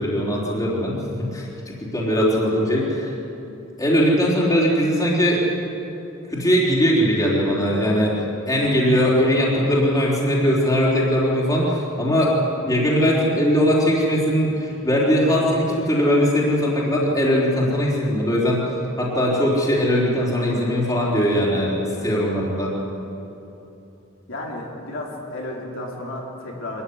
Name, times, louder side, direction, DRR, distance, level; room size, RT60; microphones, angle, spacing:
voice 1, 0.0-3.1 3.8-5.4 6.3-8.1 8.5-12.3 12.6-18.6 19.0-22.7, equal, 15° left, -4 dB, 4.1 m, -20 dB
voice 2, 24.3-26.8, left 1 dB, 65° left, -3 dB, 4.0 m, -32 dB
24.5 x 14.0 x 9.9 m, 2.9 s
head